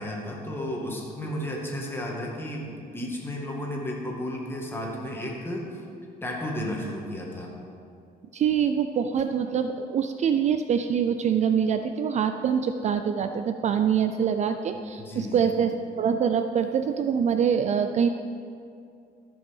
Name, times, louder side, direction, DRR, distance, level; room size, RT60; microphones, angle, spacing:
voice 1, 0.0-5.8 6.2-7.5 15.0-15.5, left 1 dB, 15° left, -2 dB, 2.0 m, -33 dB
voice 2, 8.3-18.1, right 7 dB, 45° right, 8 dB, 0.4 m, -25 dB
14.0 x 5.4 x 5.4 m, 2.4 s
cardioid pair, 110°, 17 cm